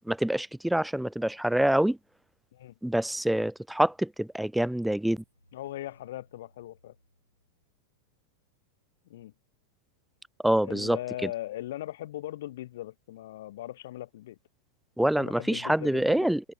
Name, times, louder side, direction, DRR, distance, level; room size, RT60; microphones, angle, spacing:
voice 1, 0.1-2.0 2.8-5.2 10.4-11.3 15.0-16.4, right 1 dB, ahead, 0.6 m, -26 dB
sound 1, 5.2-8.1, left 1 dB, 90° left, 6.9 m, -65 dB
voice 2, 5.5-6.9 9.1-9.3 10.6-14.4 15.2-16.3, left 14 dB, 55° left, 0.9 m, -39 dB
open air
figure-of-eight pair, 90°, 0 cm